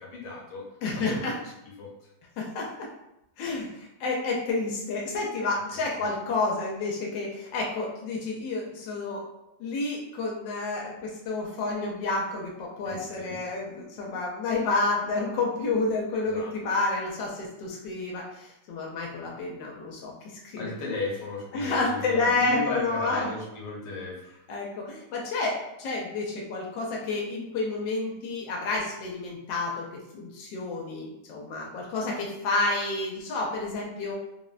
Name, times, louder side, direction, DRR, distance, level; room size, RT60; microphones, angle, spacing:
voice 1, 0.0-0.7 1.0-1.3 1.8-1.9 5.7-6.1 12.8-13.4 16.1-16.5 20.5-24.4, left 3 dB, 70° left, -3 dB, 1.3 m, -35 dB
voice 2, 0.8-1.3 2.4-2.9 3.4-9.2 9.6-20.1 20.4-20.7 21.5-23.2 24.5-34.1, left 3 dB, 90° left, -2 dB, 1.3 m, -30 dB
3.5 x 2.1 x 2.4 m, 0.87 s
omnidirectional pair, 1.9 m